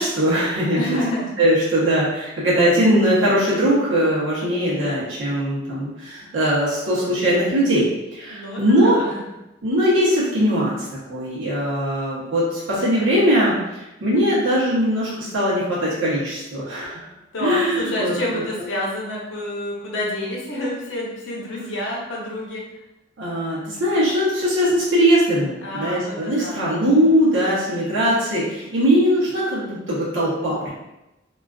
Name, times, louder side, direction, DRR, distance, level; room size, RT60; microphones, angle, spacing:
voice 1, 0.0-0.8 1.4-9.0 9.6-10.8 11.1-17.1 17.4-18.7 23.2-30.7, equal, 85° right, -7 dB, 0.8 m, -20 dB
voice 2, 0.7-1.4 8.3-9.2 17.3-22.6 25.6-26.7, left 1 dB, 85° left, -3 dB, 0.7 m, -28 dB
2.3 x 2.3 x 2.3 m, 0.96 s
head